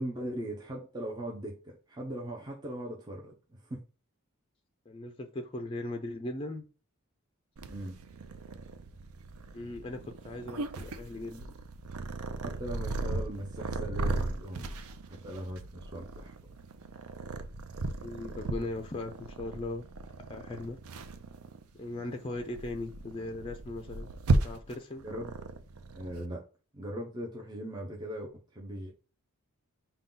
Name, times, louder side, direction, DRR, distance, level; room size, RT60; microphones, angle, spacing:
voice 1, 0.0-3.8 7.7-8.0 12.4-14.7 15.1-16.3 25.0-25.3 25.9-26.4 26.7-28.9, right 1 dB, 20° right, 0.6 m, -39 dB
voice 2, 4.9-6.6 9.5-11.5 18.0-19.9 20.2-20.8 21.7-24.1 24.4-25.0, left 2 dB, 25° left, 0.4 m, -38 dB
Purr, 7.6-26.3, right 2 dB, 85° right, 0.5 m, -36 dB
5.4 x 2.3 x 3.8 m
head